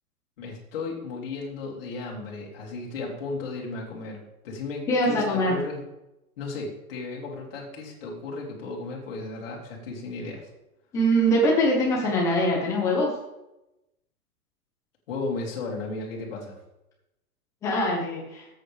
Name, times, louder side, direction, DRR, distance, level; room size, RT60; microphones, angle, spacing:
voice 1, 0.4-5.8 6.4-10.5 15.1-16.6, left 3 dB, 40° left, -3 dB, 2.4 m, -35 dB
voice 2, 4.9-5.6 10.9-13.1 17.6-18.5, equal, 5° left, -2 dB, 0.9 m, -23 dB
12.5 x 8.0 x 3.4 m, 0.91 s
hypercardioid pair, 180°, 44 cm